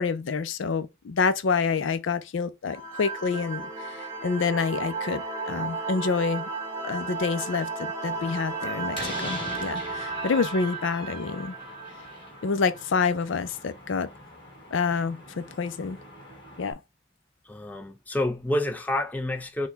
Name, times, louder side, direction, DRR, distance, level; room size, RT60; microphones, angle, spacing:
voice 1, 0.0-6.5 6.8-7.7 8.0-11.5 12.4-14.1 14.7-16.0 16.6-16.8, left 5 dB, 70° left, 0.4 m, -27 dB
sound 1, 2.7-13.0, right 3 dB, 15° right, 1.0 m, -34 dB
Slam, 8.1-16.7, left 1 dB, 25° left, 1.7 m, -42 dB
voice 2, 17.4-19.7, left 1 dB, 10° left, 0.4 m, -28 dB
6.0 x 2.2 x 3.4 m
head